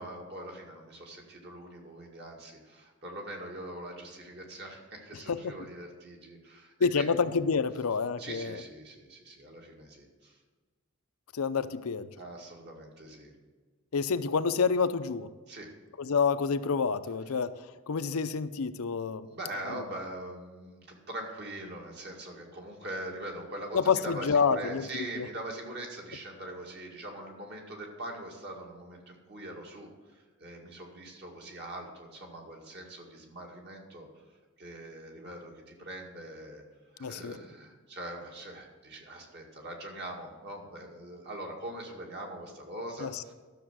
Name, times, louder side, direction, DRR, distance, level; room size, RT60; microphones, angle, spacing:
voice 1, 0.0-7.3 8.2-10.4 12.2-13.3 15.5-15.7 19.2-34.1 34.6-36.6 36.9-43.3, right 1 dB, 50° right, 0 dB, 2.1 m, -42 dB
voice 2, 6.8-8.6 11.3-12.1 13.9-15.3 16.0-17.5 17.9-19.3 23.7-25.3 37.0-37.4 43.0-43.3, left 5 dB, 80° left, 11 dB, 0.6 m, -28 dB
12.5 x 6.8 x 6.2 m, 1.3 s
head